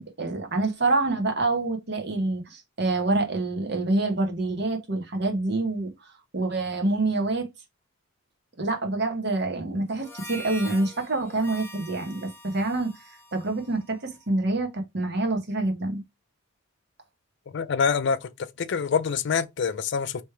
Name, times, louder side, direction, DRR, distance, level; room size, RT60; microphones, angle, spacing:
voice 1, 0.0-5.9 6.3-7.5 8.6-16.0, right 2 dB, 55° right, 1.2 m, -26 dB
Harmonica, 9.9-14.6, equal, 10° left, 1.1 m, -44 dB
voice 2, 17.5-18.3 18.6-20.2, left 6 dB, 55° left, 0.4 m, -25 dB
3.3 x 3.1 x 4.5 m
head